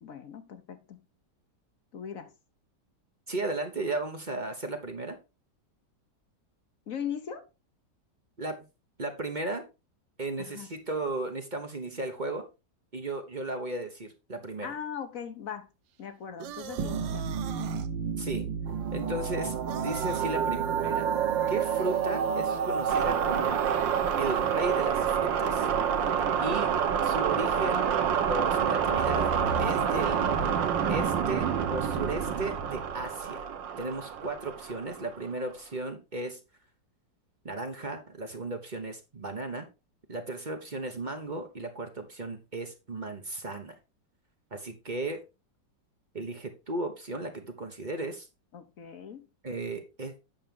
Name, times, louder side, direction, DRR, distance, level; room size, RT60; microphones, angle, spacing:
voice 1, 0.0-1.1 1.9-2.3 6.9-7.5 10.4-10.7 14.6-15.7 16.0-17.4 48.5-49.3, left 8 dB, 55° left, 1.2 m, -39 dB
voice 2, 3.3-5.2 8.4-8.7 9.0-9.7 10.2-12.5 12.9-14.7 18.2-18.5 18.9-21.1 21.5-23.6 24.2-25.7 26.0-26.7 27.0-27.9 28.3-29.3 29.6-30.2 30.9-33.4 33.8-36.4 37.4-39.7 40.1-43.7 44.5-45.2 46.1-48.3 49.4-50.1, right 2 dB, 30° right, 1.0 m, -35 dB
sound 1, 16.4-17.9 19.7-20.3, right 11 dB, 75° right, 1.3 m, -42 dB
sound 2, 16.8-35.2, right 7 dB, 90° right, 1.6 m, -28 dB
8.8 x 5.9 x 3.7 m
omnidirectional pair, 1.9 m